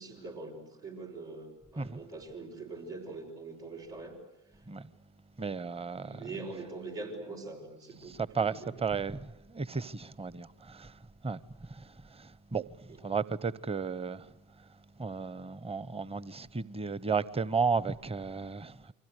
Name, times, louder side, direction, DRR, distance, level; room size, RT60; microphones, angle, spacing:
voice 1, 0.0-4.2 6.0-8.1 8.4-8.7, right 3 dB, 80° right, 5.7 m, -43 dB
voice 2, 5.4-6.2 8.1-10.9 11.2-11.4 11.7-14.3 15.0-18.9, right 5 dB, 15° right, 0.9 m, -34 dB
29.0 x 24.5 x 8.2 m
figure-of-eight pair, 45°, 38 cm